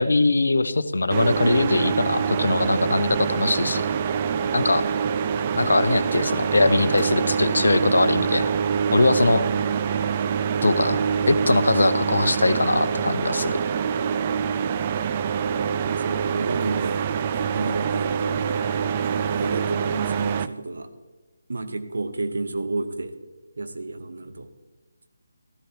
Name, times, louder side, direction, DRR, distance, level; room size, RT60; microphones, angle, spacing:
voice 1, 0.0-3.8 4.5-4.8 5.6-8.5 8.9-9.4 10.6-13.5, left 2 dB, 75° left, 12 dB, 0.7 m, -21 dB
sound 1, 1.1-20.5, right 7 dB, 30° right, 0.3 m, -25 dB
voice 2, 15.9-17.0 17.5-18.4 19.4-20.9 21.5-23.1 23.6-24.5, right 3 dB, 70° right, 8 dB, 1.0 m, -31 dB
13.5 x 12.5 x 2.9 m, 1.2 s
figure-of-eight pair, 155°, 0 cm